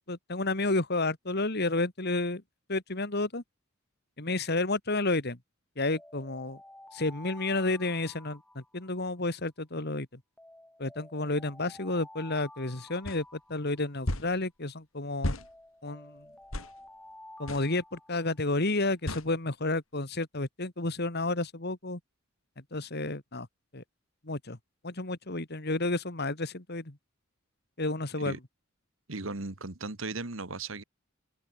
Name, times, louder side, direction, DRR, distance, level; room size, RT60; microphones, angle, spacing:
voice 1, 0.1-2.4 2.7-3.4 4.2-5.4 5.8-6.6 6.9-10.1 10.8-15.4 15.8-16.2 17.4-22.0 22.7-23.5 23.7-23.8 24.2-24.6 24.8-27.0 27.8-28.4, left 2 dB, 50° left, 2.3 m, -31 dB
Alarm, 5.9-9.2 10.4-14.2 15.4-18.6, left 1 dB, 5° left, 5.1 m, -52 dB
sound 1, 13.0-13.2 14.0-14.3 15.2-15.5 16.5-16.7 17.5-17.7 19.1-19.3, left 1 dB, 80° left, 3.5 m, -32 dB
voice 2, 29.1-30.8, right 3 dB, 70° right, 1.9 m, -36 dB
open air
head